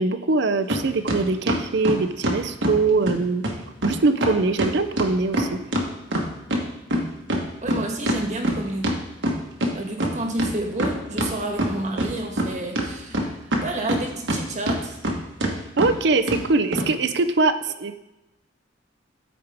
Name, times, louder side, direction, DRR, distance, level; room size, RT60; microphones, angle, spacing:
voice 1, 0.0-3.4 3.8-5.6 15.8-18.0, right 3 dB, 65° right, 10 dB, 0.6 m, -22 dB
sound 1, 0.7-0.8 1.1-2.8 3.1-3.2 3.4-3.6 3.8-3.9 4.2-6.6 6.9-9.7 10.0-10.1 10.4-11.3 11.6-12.5 12.8-14.4 14.7-15.1 15.4-15.5 15.8-15.9 16.3-16.4 16.7-16.9, right 1 dB, 80° right, 1.4 m, -24 dB
voice 2, 7.6-8.9 9.7-15.0, right 1 dB, 40° right, 3 dB, 1.4 m, -30 dB
13.5 x 5.0 x 3.5 m, 0.98 s
head